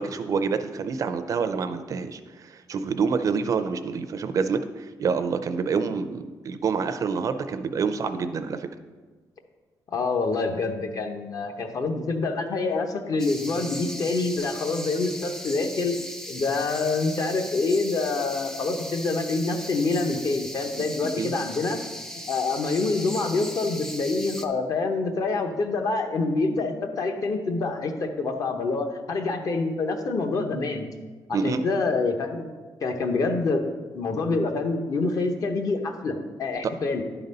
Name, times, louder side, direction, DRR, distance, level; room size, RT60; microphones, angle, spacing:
voice 1, 0.0-8.7 21.2-21.3 31.3-31.6, right 5 dB, 45° right, 10 dB, 0.4 m, -27 dB
voice 2, 9.9-15.9 16.3-21.8 22.3-30.9 31.3-32.5 32.8-33.6 33.9-37.0, left 3 dB, 50° left, 5 dB, 0.9 m, -26 dB
sound 1, 13.2-24.5, equal, 5° left, 0.4 m, -38 dB
11.0 x 4.0 x 5.3 m, 1.3 s
wide cardioid pair, 160°, 8 cm